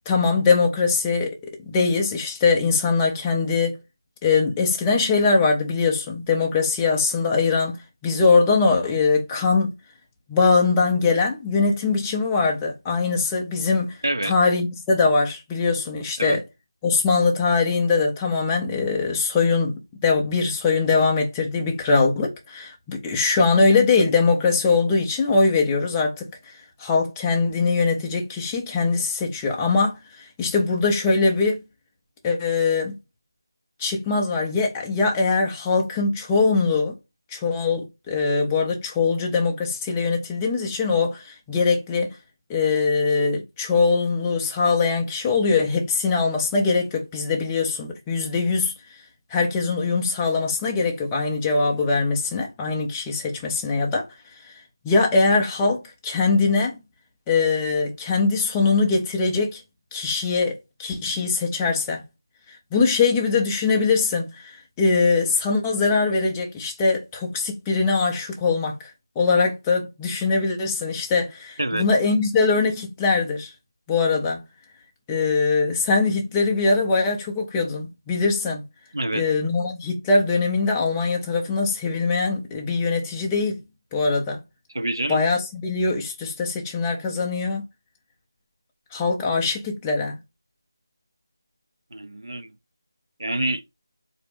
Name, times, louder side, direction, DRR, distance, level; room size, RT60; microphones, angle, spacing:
voice 1, 0.1-1.4 1.7-3.8 4.2-7.8 8.0-9.7 10.3-16.4 16.8-19.8 20.0-26.3 26.8-31.6 32.2-32.9 33.8-36.9 37.3-42.2 42.5-48.7 49.3-54.1 54.5-54.6 54.8-56.8 57.3-59.6 59.9-62.0 62.5-68.8 69.2-73.5 73.9-74.4 75.1-78.6 79.1-83.6 83.9-84.4 85.1-87.6 88.9-90.1, left 4 dB, 10° left, 0.4 m, -22 dB
voice 2, 78.9-79.2 84.7-85.2 91.9-92.5 93.2-93.6, right 1 dB, 70° right, 0.5 m, -26 dB
4.1 x 2.6 x 3.4 m
figure-of-eight pair, 165°, 2 cm